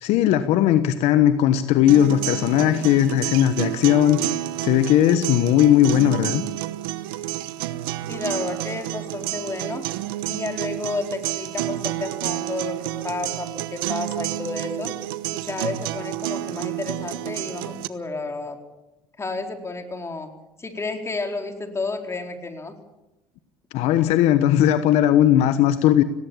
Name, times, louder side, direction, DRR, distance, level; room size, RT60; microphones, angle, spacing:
voice 1, 0.0-6.4 23.7-26.0, left 11 dB, 70° left, 12 dB, 1.2 m, -18 dB
sound 1, 1.9-17.9, right 15 dB, 90° right, 0.9 m, -30 dB
voice 2, 8.1-9.8 10.3-15.0 15.3-18.6 19.2-20.3 20.6-22.7, left 3 dB, 25° left, 5 dB, 4.2 m, -31 dB
18.5 x 17.5 x 8.8 m, 0.98 s
supercardioid pair, 80°, 11 cm